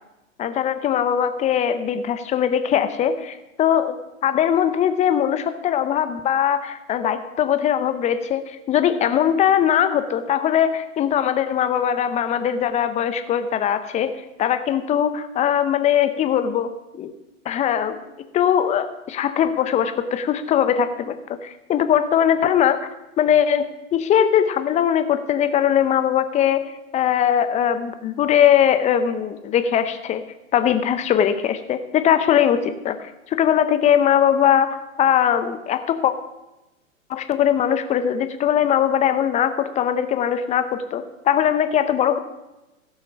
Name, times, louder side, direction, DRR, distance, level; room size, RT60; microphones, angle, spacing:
voice 1, 0.4-4.0 4.2-14.1 14.4-17.1 17.4-18.0 18.3-22.9 23.2-26.6 26.9-30.2 30.5-36.1 37.1-42.2, left 9 dB, 15° left, 10 dB, 0.7 m, -20 dB
16.0 x 6.4 x 5.1 m, 0.98 s
hypercardioid pair, 115°, 40 cm